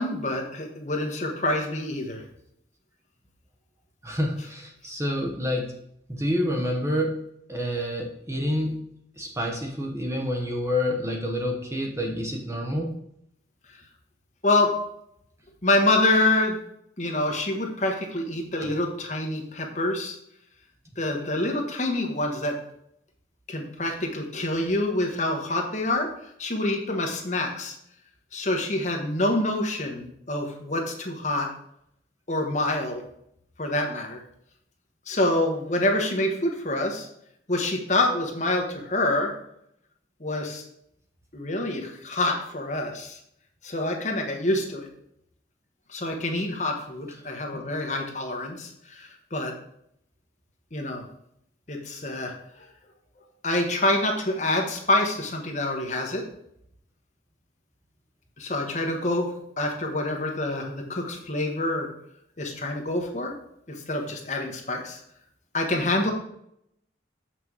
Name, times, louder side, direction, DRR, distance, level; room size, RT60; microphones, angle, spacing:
voice 1, 0.0-2.2 14.4-14.7 15.6-16.6 17.0-20.2 21.0-22.6 23.5-26.1 26.4-27.7 28.3-31.5 32.3-33.0 33.6-34.2 35.1-37.1 37.5-39.3 40.2-40.6 41.3-43.2 43.6-44.9 45.9-49.5 50.7-51.0 51.7-52.7 53.4-56.2 58.4-59.3 59.6-61.9 62.4-63.3 63.7-65.0 65.5-66.1, left 2 dB, 40° left, 1 dB, 1.2 m, -26 dB
voice 2, 4.0-5.7 6.1-7.2 7.5-8.8 9.2-12.9 18.6-18.7 47.5-47.6, left 1 dB, 15° right, 1 dB, 1.0 m, -28 dB
7.0 x 6.0 x 4.7 m, 0.74 s
head